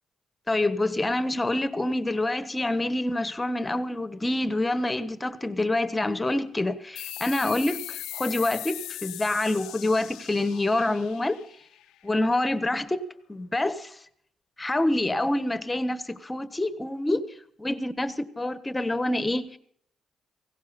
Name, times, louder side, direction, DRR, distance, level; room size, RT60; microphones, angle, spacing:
voice 1, 0.5-11.4 12.0-13.0 13.3-14.0 14.6-17.2 17.6-19.6, left 2 dB, 15° left, 1.3 m, -27 dB
sound 1, 7.0-12.1, left 14 dB, 90° left, 0.6 m, -39 dB
18.0 x 16.5 x 4.2 m
cardioid pair, 90°, 0 cm